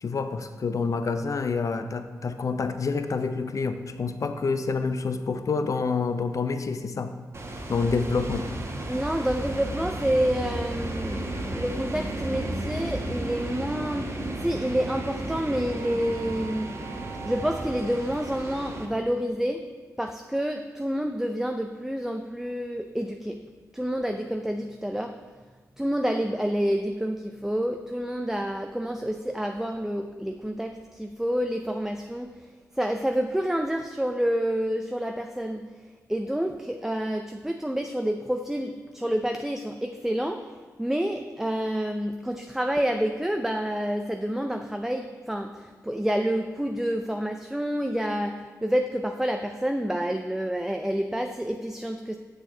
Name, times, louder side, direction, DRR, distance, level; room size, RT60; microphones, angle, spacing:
voice 1, 0.0-7.1 7.7-8.5, left 4 dB, 50° left, 9 dB, 0.5 m, -27 dB
sound 1, 7.3-18.9, right 1 dB, 40° right, 1.0 m, -33 dB
voice 2, 8.9-16.7 17.3-19.7 20.0-23.4 23.7-25.2 25.8-32.5 32.8-35.7 36.1-52.2, equal, 5° right, 5 dB, 0.4 m, -28 dB
6.4 x 6.3 x 3.7 m, 1.4 s
cardioid pair, 50°, 7 cm